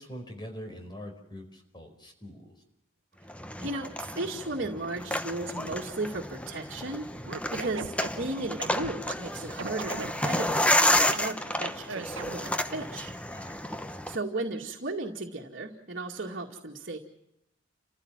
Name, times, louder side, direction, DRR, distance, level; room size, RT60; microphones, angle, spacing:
voice 1, 0.0-2.6 13.3-13.6, equal, 25° left, 4 dB, 4.5 m, -43 dB
sound 1, 3.3-14.2, left 1 dB, 5° left, 0.9 m, -30 dB
voice 2, 3.6-13.1 14.1-17.0, right 2 dB, 55° right, -2 dB, 2.3 m, -35 dB
Scratching (performance technique), 7.2-9.1 9.6-11.2 11.9-12.5, right 4 dB, 80° right, 1.0 m, -37 dB
29.5 x 15.5 x 7.4 m, 0.86 s
head